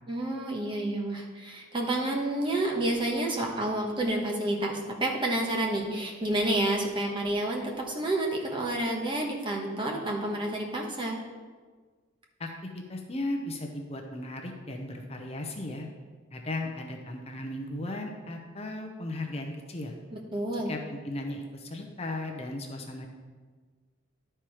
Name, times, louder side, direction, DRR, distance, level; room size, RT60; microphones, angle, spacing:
voice 1, 0.1-11.2 20.1-20.7, right 1 dB, 25° right, -1 dB, 1.1 m, -29 dB
voice 2, 12.4-15.9 16.3-19.9 20.7-23.1, left 1 dB, 30° left, 2 dB, 0.7 m, -36 dB
11.5 x 4.4 x 4.9 m, 1.5 s
head